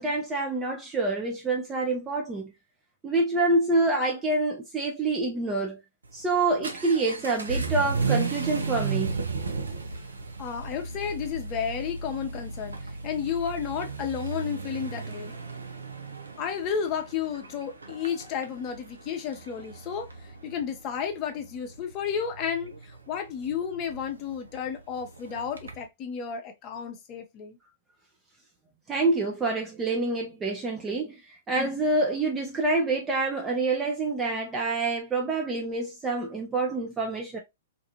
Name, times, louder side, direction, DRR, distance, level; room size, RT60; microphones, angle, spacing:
voice 1, 0.0-2.5 3.0-5.8 6.1-9.2 28.9-37.4, right 2 dB, 15° right, 0.5 m, -27 dB
Vehicle / Accelerating revving vroom, 6.0-25.8, right 4 dB, 80° right, 0.5 m, -35 dB
voice 2, 10.4-15.3 16.4-27.6, left 7 dB, 35° left, 0.7 m, -32 dB
2.6 x 2.4 x 2.8 m
figure-of-eight pair, 110°, 0 cm